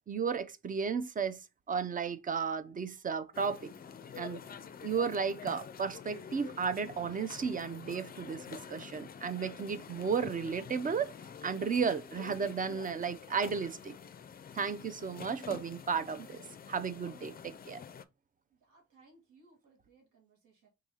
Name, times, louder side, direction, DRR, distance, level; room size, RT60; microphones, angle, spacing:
voice 1, 0.1-1.4 1.7-3.7 4.2-4.4 4.8-11.1 11.4-13.9 14.5-16.4 16.7-17.8, right 6 dB, 30° right, 0.5 m, -34 dB
sound 1, 3.3-18.0, left 7 dB, 30° left, 0.4 m, -48 dB
voice 2, 18.5-20.7, right 3 dB, 85° right, 1.8 m, -64 dB
3.8 x 2.6 x 4.7 m
cardioid pair, 90°, 30 cm